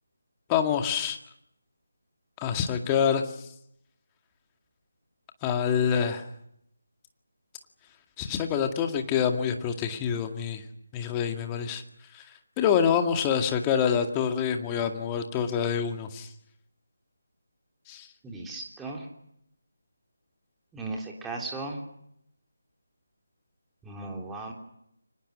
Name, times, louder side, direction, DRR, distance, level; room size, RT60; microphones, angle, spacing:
voice 1, 0.5-1.2 2.4-3.5 5.4-6.3 8.2-10.6 10.9-11.8 12.1-12.2 12.6-16.3 17.9-18.1, left 7 dB, 15° left, 5 dB, 2.1 m, -26 dB
voice 2, 18.2-19.1 20.7-21.8 23.8-24.5, right 2 dB, 5° right, -1 dB, 3.4 m, -36 dB
29.5 x 25.0 x 6.5 m, 0.76 s
figure-of-eight pair, 155°, 0 cm